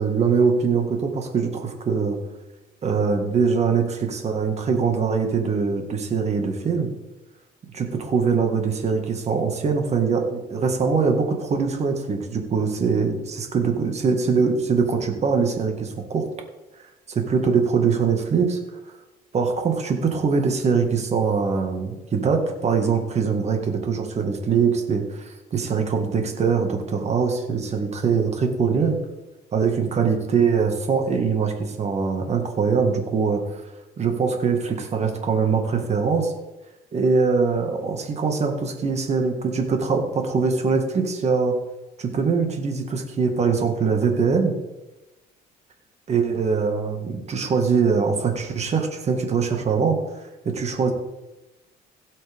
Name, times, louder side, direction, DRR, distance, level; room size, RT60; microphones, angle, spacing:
voice 1, 0.0-2.2 2.8-6.9 7.7-16.3 17.2-18.6 19.3-29.0 29.5-33.6 34.0-36.3 36.9-41.5 42.0-44.5 46.1-50.0 50.5-50.9, right 5 dB, 40° right, 4 dB, 1.9 m, -22 dB
16.0 x 7.8 x 3.6 m, 1.0 s
cardioid pair, 110°, 17 cm